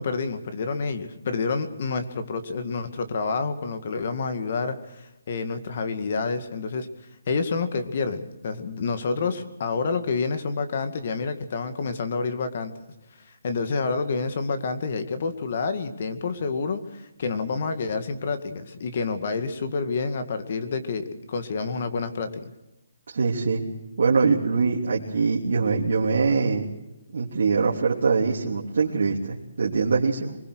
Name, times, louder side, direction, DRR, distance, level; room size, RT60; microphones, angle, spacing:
voice 1, 0.0-6.9 7.3-12.7 13.4-22.5, left 4 dB, 45° left, 8 dB, 2.1 m, -28 dB
voice 2, 23.1-23.6 24.0-26.7 27.1-30.4, right 4 dB, 60° right, -3 dB, 3.2 m, -23 dB
23.5 x 21.0 x 6.4 m, 0.96 s
hypercardioid pair, 170°, 0 cm